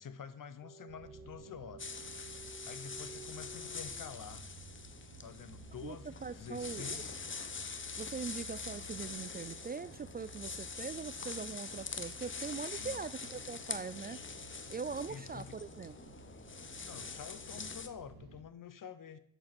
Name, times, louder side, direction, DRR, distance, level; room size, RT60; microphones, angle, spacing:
voice 1, 0.0-2.0 2.6-4.4 5.2-7.1 12.8-13.1 15.1-15.6 16.8-19.2, left 7 dB, 60° left, 13 dB, 1.0 m, -48 dB
sound 1, 0.6-4.6, right 3 dB, 10° left, 4.5 m, -53 dB
sound 2, 0.9-18.4, right 3 dB, 85° right, 1.1 m, -54 dB
sound 3, 1.8-17.9, left 5 dB, 35° left, 0.9 m, -44 dB
voice 2, 6.2-7.0 8.0-14.2 14.7-16.1, right 5 dB, 25° right, 16 dB, 0.3 m, -42 dB
8.1 x 6.4 x 5.9 m, 0.71 s
cardioid pair, 70°, 36 cm